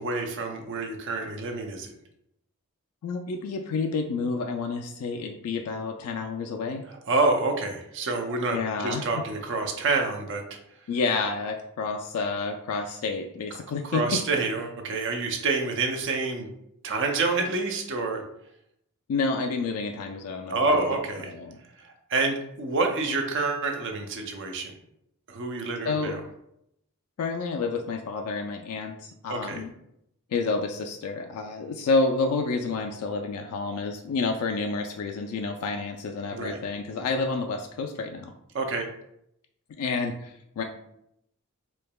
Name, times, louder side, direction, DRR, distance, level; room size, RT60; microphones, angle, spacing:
voice 1, 0.0-1.9 7.1-8.6 8.8-10.4 13.9-16.5 16.8-18.2 20.5-21.3 21.8-24.7 25.3-26.2 29.3-29.6 36.3-36.6 38.5-38.9, right 3 dB, 55° right, 4 dB, 0.6 m, -27 dB
voice 2, 3.0-6.8 8.5-9.3 10.9-14.2 19.1-21.6 25.8-26.2 27.2-29.7 30.3-38.3 39.8-40.6, left 4 dB, 75° left, 4 dB, 0.3 m, -29 dB
4.5 x 2.8 x 2.2 m, 0.77 s
head